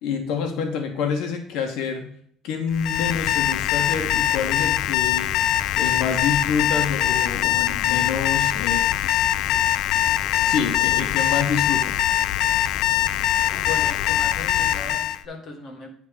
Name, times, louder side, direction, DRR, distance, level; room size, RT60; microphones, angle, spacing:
voice 1, 0.0-2.1 2.4-5.3 5.8-8.9 10.4-12.0, left 6 dB, 90° left, 4 dB, 1.3 m, -27 dB
Alarm, 2.7-15.2, left 12 dB, 70° left, 0.3 m, -22 dB
voice 2, 13.6-16.0, left 4 dB, 40° left, 1 dB, 1.7 m, -37 dB
9.6 x 3.7 x 5.9 m, 0.62 s
cardioid pair, 160°, 0 cm